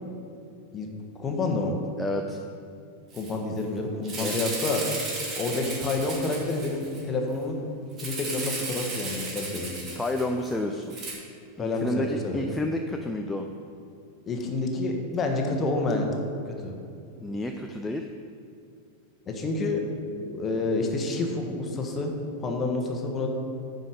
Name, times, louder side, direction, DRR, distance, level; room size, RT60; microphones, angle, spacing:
voice 1, 1.1-1.8 3.1-4.9 5.4-7.6 8.0-10.0 11.6-12.4 14.3-16.1 16.4-16.7 19.3-19.8 20.3-22.1 22.4-23.3, left 3 dB, 25° left, 2 dB, 1.4 m, -28 dB
voice 2, 2.0-2.4 4.2-4.4 9.9-10.9 11.6-13.5 17.1-18.1, left 1 dB, 5° left, 3 dB, 0.5 m, -30 dB
Rattle (instrument), 3.1-3.3 3.6-3.7 4.0-7.0 8.0-10.5 10.9-11.1, right 2 dB, 30° right, 2.6 m, -34 dB
9.8 x 5.4 x 6.5 m, 2.5 s
figure-of-eight pair, 90°, 0 cm